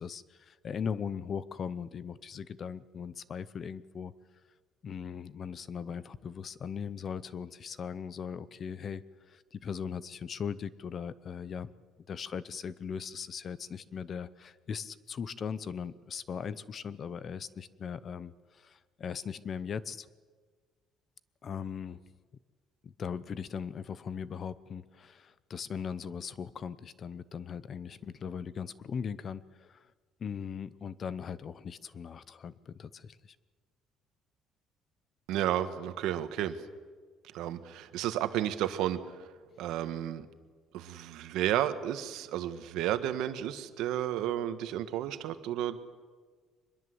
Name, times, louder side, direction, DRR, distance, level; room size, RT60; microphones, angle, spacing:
voice 1, 0.0-4.1 4.8-11.7 12.1-20.1 21.4-22.0 22.8-29.8 30.2-33.3, left 7 dB, 35° left, 17 dB, 0.7 m, -39 dB
voice 2, 35.3-36.6 37.3-39.0 39.6-40.3 40.7-45.8, right 12 dB, 80° right, 10 dB, 1.6 m, -32 dB
24.0 x 21.5 x 8.0 m, 1.5 s
cardioid pair, 170°, 0 cm